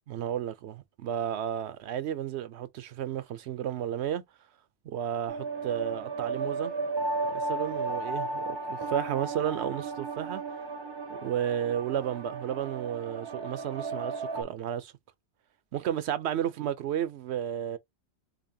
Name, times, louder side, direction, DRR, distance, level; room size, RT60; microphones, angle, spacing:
voice 1, 0.1-4.2 4.8-6.7 7.2-10.4 11.1-14.9 15.7-17.8, right 10 dB, 75° right, 0.9 m, -32 dB
sound 1, 5.3-14.4, right 3 dB, 30° right, 0.6 m, -34 dB
4.0 x 2.8 x 2.7 m
omnidirectional pair, 1.1 m